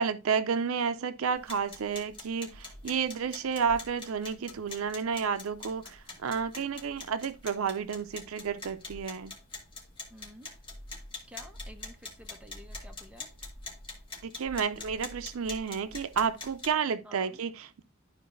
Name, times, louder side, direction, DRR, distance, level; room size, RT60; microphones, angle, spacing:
voice 1, 0.0-9.3 14.2-17.8, right 6 dB, 70° right, 0.5 m, -31 dB
sound 1, 1.3-16.7, left 2 dB, 25° left, 2.1 m, -45 dB
voice 2, 10.1-10.5 11.3-13.3 17.0-17.4, equal, 5° right, 0.9 m, -51 dB
12.0 x 4.6 x 2.6 m
head